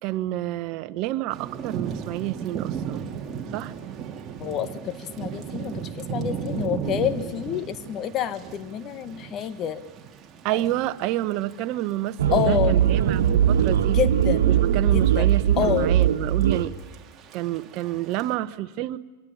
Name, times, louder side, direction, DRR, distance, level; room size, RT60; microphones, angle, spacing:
voice 1, 0.0-3.1 3.5-3.7 10.4-14.0 14.4-16.7 17.3-19.0, right 15 dB, 50° right, 12 dB, 1.1 m, -29 dB
Thunder / Rain, 1.3-18.3, right 7 dB, 30° right, 2.6 m, -36 dB
voice 2, 4.4-5.7 6.1-9.8 12.3-12.7 14.0-14.4 15.2-15.3 15.6-15.9, left 10 dB, 35° left, 12 dB, 1.4 m, -27 dB
sound 1, 12.2-16.7, right 10 dB, 80° right, 1.5 m, -20 dB
23.5 x 22.5 x 8.8 m, 1.2 s
hypercardioid pair, 115°, 0 cm